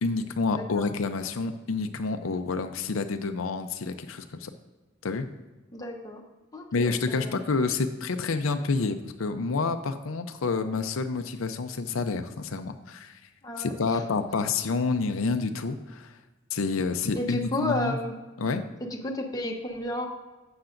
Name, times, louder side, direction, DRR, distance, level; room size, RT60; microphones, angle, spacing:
voice 1, 0.0-4.5 5.0-5.3 6.7-13.2 13.6-16.1 16.5-18.0 18.4-18.6, left 4 dB, 85° left, 8 dB, 0.6 m, -28 dB
voice 2, 0.6-0.9 5.7-6.2 6.5-7.3 13.4-13.7 17.1-18.2 18.8-20.1, left 1 dB, 20° left, 1 dB, 1.0 m, -32 dB
11.5 x 7.9 x 2.6 m, 1.2 s
head